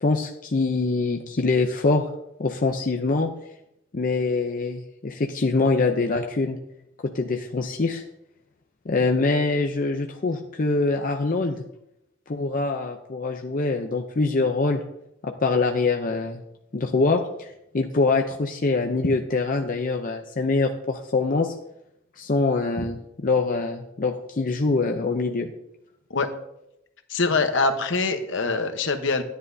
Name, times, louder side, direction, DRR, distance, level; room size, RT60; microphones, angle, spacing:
voice 1, 0.0-2.1 2.4-3.4 3.9-6.6 7.0-8.0 8.9-11.6 12.3-14.8 15.2-16.4 16.7-21.6 22.2-25.5, left 3 dB, 40° left, 3 dB, 0.6 m, -24 dB
voice 2, 27.1-29.2, left 3 dB, 65° left, 7 dB, 1.0 m, -24 dB
13.0 x 10.0 x 2.7 m, 0.84 s
head